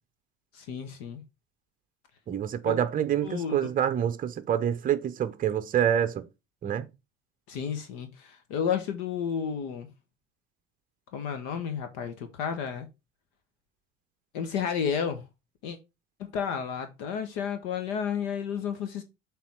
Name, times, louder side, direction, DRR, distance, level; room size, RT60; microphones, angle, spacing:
voice 1, 0.5-1.2 2.6-2.8 3.2-3.6 7.5-9.9 11.1-12.9 14.3-15.3 15.6-15.8 16.2-19.0, left 7 dB, 50° left, 1.3 m, -32 dB
voice 2, 2.3-6.2 6.6-6.9, right 9 dB, 20° right, 0.8 m, -27 dB
7.3 x 3.7 x 5.9 m
figure-of-eight pair, 70°, 38 cm